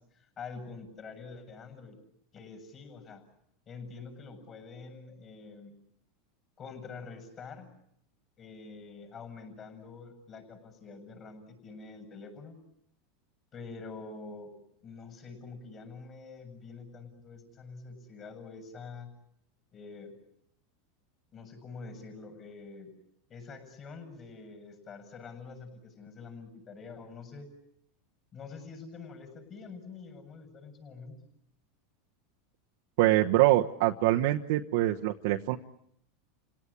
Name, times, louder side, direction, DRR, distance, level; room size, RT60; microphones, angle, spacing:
voice 1, 0.0-2.0 2.3-3.2 3.7-5.7 6.6-7.7 8.4-12.6 13.5-14.6 14.8-19.1 19.7-20.1 21.3-22.9 23.3-27.5 28.3-31.2, left 4 dB, 30° left, 5 dB, 7.4 m, -46 dB
voice 2, 33.0-35.6, right 15 dB, 70° right, 2 dB, 1.1 m, -24 dB
29.5 x 18.0 x 9.9 m, 0.73 s
supercardioid pair, 130°, 0 cm